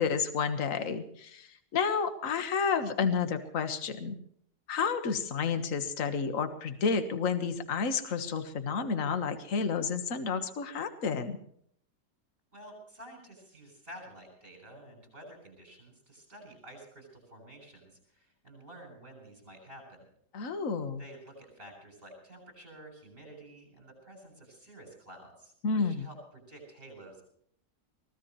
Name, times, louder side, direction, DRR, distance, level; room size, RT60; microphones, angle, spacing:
voice 1, 0.0-4.2 4.7-11.4 20.3-21.0 25.6-26.1, left 5 dB, 50° left, 8 dB, 1.7 m, -30 dB
voice 2, 12.5-20.0 21.0-27.2, right 1 dB, 30° right, 4 dB, 7.6 m, -50 dB
24.0 x 17.0 x 3.2 m, 0.65 s
omnidirectional pair, 1.9 m